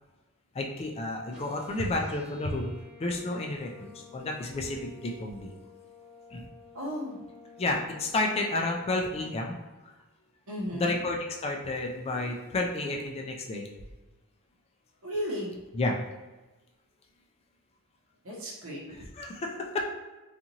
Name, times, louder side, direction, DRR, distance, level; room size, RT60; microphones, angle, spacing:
voice 1, 0.5-2.7 3.0-5.5 6.3-6.4 7.6-9.6 10.7-13.7 15.7-16.0 18.9-19.8, left 2 dB, 25° left, 1 dB, 0.3 m, -31 dB
sound 1, 1.3-9.3, left 6 dB, 30° right, 1.0 m, -52 dB
voice 2, 6.7-7.2 10.5-11.0 15.0-15.5 18.2-19.0, equal, 65° right, -3 dB, 0.8 m, -34 dB
2.6 x 2.5 x 2.8 m, 1.1 s
head